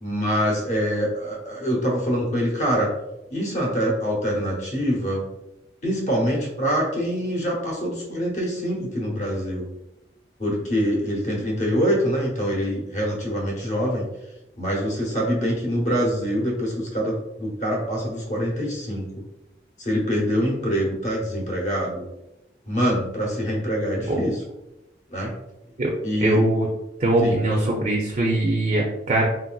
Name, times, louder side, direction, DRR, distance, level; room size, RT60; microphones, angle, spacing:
voice 1, 0.0-2.9 3.3-5.2 5.8-9.6 10.4-14.1 14.6-19.2 19.8-22.0 22.7-24.4 25.1-25.3 26.0-26.4 27.2-27.8, equal, 40° left, -2 dB, 0.8 m, -25 dB
voice 2, 26.2-26.7 27.0-29.3, right 1 dB, 40° right, -1 dB, 0.4 m, -21 dB
3.2 x 2.6 x 2.3 m, 0.93 s
head